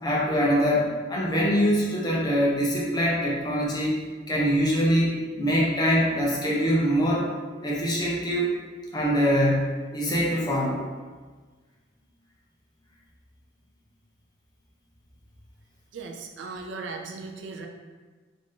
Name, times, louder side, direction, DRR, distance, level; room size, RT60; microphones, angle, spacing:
voice 1, 0.0-4.0 4.3-7.3 7.6-8.5 8.9-10.8, equal, 20° left, -5 dB, 0.6 m, -24 dB
voice 2, 15.9-17.7, right 4 dB, 65° right, 2 dB, 0.4 m, -37 dB
3.5 x 2.6 x 3.6 m, 1.4 s
head